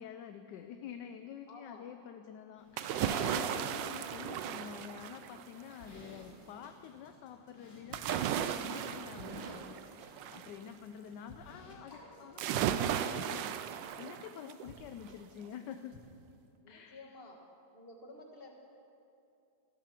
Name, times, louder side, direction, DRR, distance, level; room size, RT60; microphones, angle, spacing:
voice 1, 0.0-16.0 16.7-17.1, left 8 dB, 75° left, 8 dB, 1.1 m, -48 dB
voice 2, 1.5-1.9 16.6-17.4 17.7-18.5, left 2 dB, 30° left, 1 dB, 1.6 m, -52 dB
Livestock farm animals working animals, 2.6-13.9, left 1 dB, 50° left, 2.7 m, -52 dB
sound 1, 2.8-5.6 7.9-10.5 12.4-14.7 15.1-15.2, right 10 dB, 75° right, 1.2 m, -35 dB
sound 2, 5.8-16.0, left 1 dB, 35° right, 3.3 m, -56 dB
13.5 x 12.0 x 5.9 m, 2.6 s
omnidirectional pair, 2.1 m